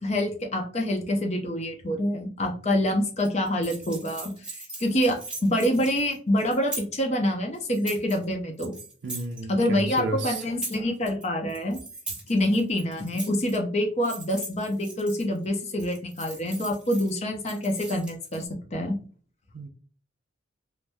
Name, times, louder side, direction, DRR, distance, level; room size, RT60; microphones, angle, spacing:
voice 1, 0.0-8.8 9.5-11.8 12.3-19.0, left 1 dB, 35° left, 3 dB, 0.6 m, -26 dB
sound 1, 3.2-7.0 7.5-8.2 8.6-9.4 9.8-11.2 11.5-13.6 14.0-15.4 15.8-17.1 17.4-18.4, right 2 dB, 5° right, 1.1 m, -40 dB
voice 2, 9.0-10.4 19.5-19.7, right 3 dB, 60° right, 2 dB, 0.5 m, -32 dB
3.4 x 2.0 x 2.6 m, 0.42 s
head